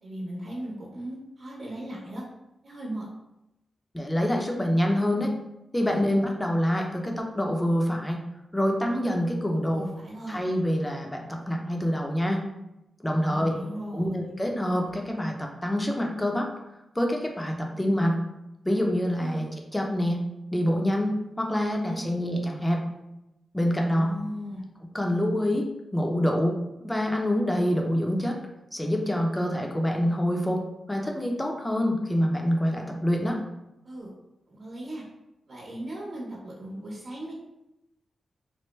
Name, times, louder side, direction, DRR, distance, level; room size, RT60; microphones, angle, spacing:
voice 1, 0.0-2.2 2.6-3.1 5.8-6.1 9.5-10.4 13.1-14.1 19.2-19.5 21.9-22.0 23.7-24.6 33.8-34.1 34.5-35.0 35.5-37.3, right 1 dB, 65° right, -6 dB, 1.0 m, -37 dB
voice 2, 3.9-5.3 5.7-8.2 8.5-9.8 10.3-12.5 13.0-13.6 13.9-16.5 16.9-18.2 18.6-19.5 19.7-20.2 20.5-22.8 23.5-24.1 24.9-26.6 26.8-28.4 28.7-33.4, equal, 15° left, 1 dB, 0.7 m, -26 dB
3.3 x 2.1 x 3.2 m, 0.90 s
cardioid pair, 50°, 0 cm